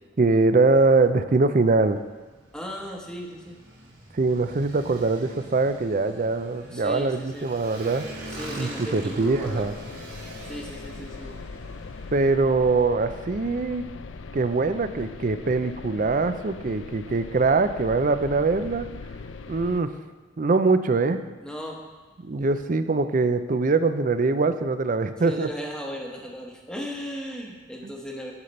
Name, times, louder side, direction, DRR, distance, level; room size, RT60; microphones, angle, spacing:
voice 1, 0.2-2.0 4.1-8.1 8.6-9.7 12.1-13.9 14.3-18.9 19.5-19.9 20.4-21.2 22.2-25.5 27.8-27.9, right 3 dB, 45° right, 10 dB, 0.5 m, -23 dB
Motorcycle, 1.6-12.3, right 1 dB, 65° right, 2.7 m, -43 dB
voice 2, 2.5-3.6 6.7-7.5 8.3-9.7 10.5-11.4 21.4-21.8 25.2-28.3, equal, 5° left, 0 dB, 1.0 m, -36 dB
sound 1, 9.3-19.8, left 4 dB, 80° left, 0.5 m, -40 dB
9.7 x 5.8 x 5.3 m, 1.2 s
head